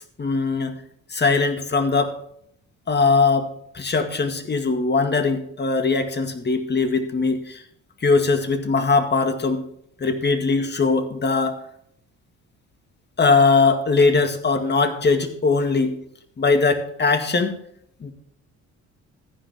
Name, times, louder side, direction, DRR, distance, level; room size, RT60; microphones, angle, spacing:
voice 1, 0.2-0.8 1.1-2.2 2.9-3.5 3.7-7.6 8.0-9.6 10.0-11.6 13.2-15.9 16.4-17.6 18.0-18.1, left 4 dB, 35° left, 8 dB, 2.0 m, -20 dB
14.0 x 10.0 x 3.6 m, 0.68 s
cardioid pair, 90°, 30 cm